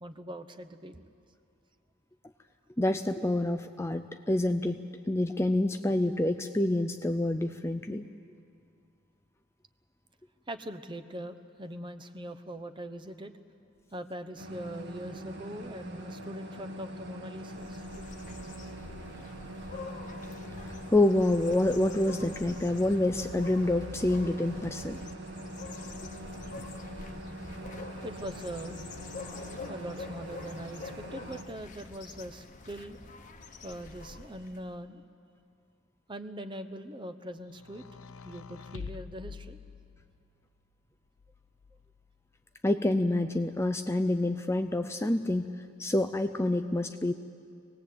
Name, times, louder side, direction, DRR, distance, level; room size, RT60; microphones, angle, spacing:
voice 1, 0.0-1.0 10.5-13.3 13.9-18.1 28.0-28.8 29.7-33.0 33.6-35.0 36.1-37.8 38.2-39.6, right 1 dB, 20° right, 10 dB, 0.9 m, -42 dB
voice 2, 2.8-4.8 5.1-8.1 20.9-25.0 42.6-45.5 45.8-47.1, left 1 dB, 10° left, 7 dB, 0.5 m, -27 dB
sound 1, 14.4-31.4, right 1 dB, 55° right, 1.6 m, -43 dB
sound 2, 17.4-34.7, left 3 dB, 35° left, 1.1 m, -45 dB
sound 3, 37.6-40.3 41.2-42.1, left 4 dB, 75° left, 0.7 m, -46 dB
25.0 x 19.0 x 8.5 m, 2.5 s
head